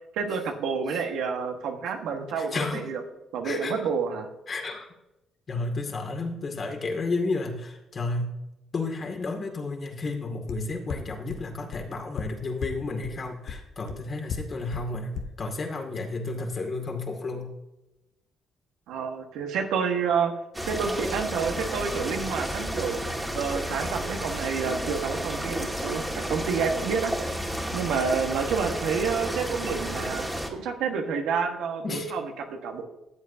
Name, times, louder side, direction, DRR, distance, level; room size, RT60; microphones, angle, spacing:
voice 1, 0.1-3.0 3.3-4.3 18.9-20.3 20.6-23.0 23.3-27.1 27.7-32.8, right 6 dB, 90° right, 3 dB, 1.4 m, -29 dB
voice 2, 2.4-2.9 3.4-3.8 4.5-4.9 5.5-8.3 8.7-15.1 15.4-17.5 31.8-32.1, left 3 dB, 45° left, 2 dB, 2.2 m, -32 dB
sound 1, 10.5-10.6 10.9-11.0 11.3-11.4 11.7-11.8 12.2-12.3 12.6-12.7 13.0-13.1 13.5-13.6 13.9-14.0 14.3-14.4 14.7-14.8 15.2-15.3, left 8 dB, 75° left, 1.0 m, -32 dB
sound 2, 20.5-30.5, equal, 10° right, 1.8 m, -32 dB
14.0 x 8.0 x 2.7 m, 0.93 s
cardioid pair, 90°, 0 cm